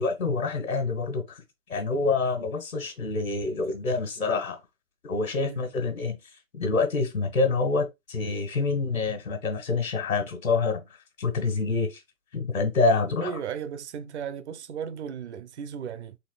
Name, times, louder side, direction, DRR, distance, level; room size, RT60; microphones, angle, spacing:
voice 1, 0.0-1.4 1.7-4.6 5.0-6.2 6.6-10.8 11.2-12.0 12.3-13.3, left 4 dB, 80° left, 1.5 m, -26 dB
voice 2, 13.2-16.2, right 7 dB, 55° right, 0.6 m, -35 dB
4.1 x 3.2 x 2.3 m
figure-of-eight pair, 125°, 40 cm